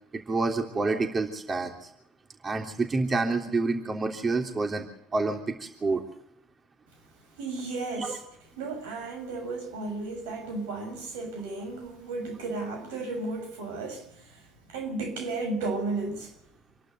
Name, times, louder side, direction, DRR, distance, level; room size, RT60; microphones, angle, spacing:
voice 1, 0.1-1.9 2.4-4.8 5.1-6.0 8.0-8.2, right 3 dB, 30° right, 3.3 m, -28 dB
voice 2, 7.3-8.2 8.6-16.3, right 3 dB, 85° right, 6.8 m, -34 dB
27.0 x 12.0 x 8.3 m
hypercardioid pair, 70°, 0 cm